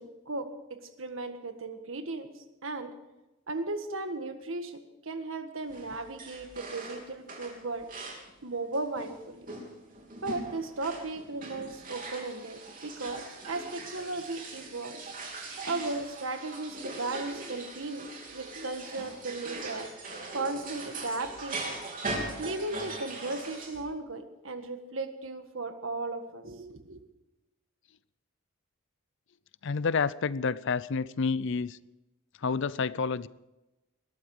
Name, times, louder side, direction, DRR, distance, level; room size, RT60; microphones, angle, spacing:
voice 1, 0.0-2.3 2.6-2.9 3.5-7.9 8.4-9.5 10.2-15.0 15.6-19.9 20.3-21.8 22.4-27.0, right 2 dB, 65° right, 1.7 m, -36 dB
sound 1, 5.7-8.3 8.7-23.8, right 2 dB, 40° right, 3.4 m, -41 dB
voice 2, 29.6-31.8 32.4-33.3, left 5 dB, 60° left, 0.5 m, -29 dB
20.0 x 13.5 x 4.9 m
head